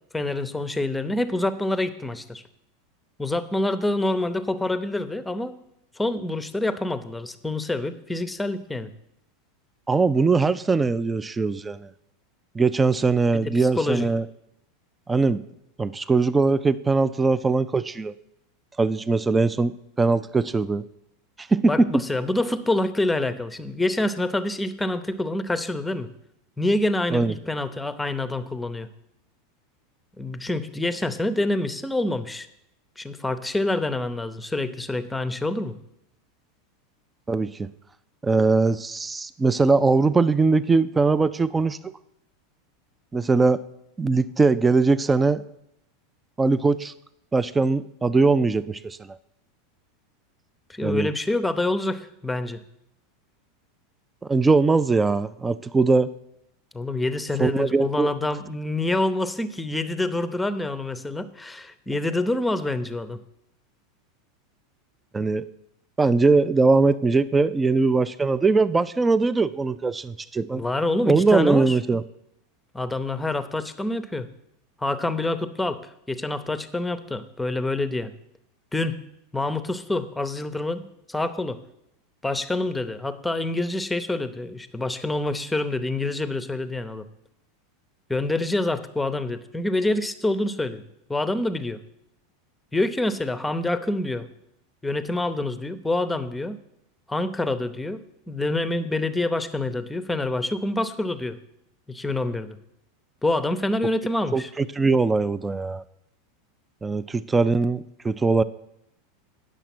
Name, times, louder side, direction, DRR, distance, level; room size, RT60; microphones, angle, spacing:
voice 1, 0.1-2.4 3.2-5.5 6.0-8.9 13.3-14.1 21.7-26.1 26.6-28.9 30.2-32.5 33.0-35.7 50.7-52.6 56.7-63.2 70.5-71.8 72.7-74.3 74.8-78.1 78.7-79.0 79.3-80.8 81.1-81.6 82.2-87.1 88.1-90.8 91.1-91.8 92.7-94.3 94.8-96.6 97.1-98.0 98.3-101.4 101.9-102.6 103.2-104.5, left 2 dB, 10° left, 12 dB, 0.7 m, -26 dB
voice 2, 9.9-11.9 12.6-14.3 15.1-15.4 15.8-18.1 18.8-20.8 21.4-22.0 27.1-27.3 37.3-37.7 38.2-41.9 43.1-43.6 44.0-45.4 46.4-46.9 47.3-49.2 50.8-51.1 54.3-56.1 57.4-58.1 65.1-65.5 66.0-70.6 71.1-72.0 104.3-105.8 106.8-108.4, right 3 dB, 15° right, 14 dB, 0.4 m, -21 dB
9.0 x 6.5 x 6.0 m, 0.80 s
hypercardioid pair, 95°, 0 cm